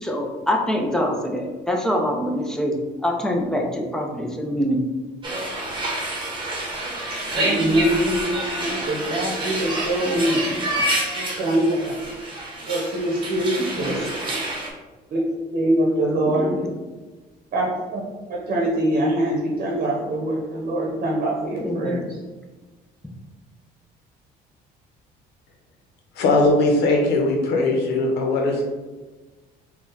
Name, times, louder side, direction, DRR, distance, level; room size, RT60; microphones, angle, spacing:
voice 1, 0.0-2.8 3.0-4.8 10.1-10.8 13.6-13.9 16.3-16.7 21.6-22.1, equal, 5° left, 1 dB, 0.6 m, -25 dB
sound 1, 5.2-14.7, right 1 dB, 30° right, 1.0 m, -28 dB
voice 2, 7.2-10.5 11.1-11.9 12.6-14.3 15.1-15.3 15.5-16.5 17.5-18.0 18.3-22.1, right 1 dB, 55° right, -2 dB, 0.9 m, -23 dB
voice 3, 26.2-28.6, left 2 dB, 85° left, 1 dB, 0.9 m, -19 dB
4.1 x 2.4 x 3.9 m, 1.2 s
cardioid pair, 110°, 17 cm